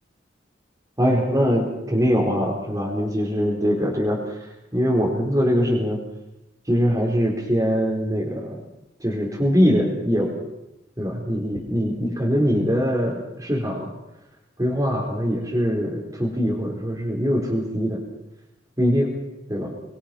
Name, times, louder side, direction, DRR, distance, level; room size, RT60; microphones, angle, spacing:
voice 1, 1.0-6.0 6.6-8.6 9.0-10.4 11.0-13.9 14.6-18.0 18.8-19.1 19.5-19.7, equal, 20° right, -4 dB, 4.4 m, -22 dB
25.0 x 22.0 x 6.0 m, 0.91 s
head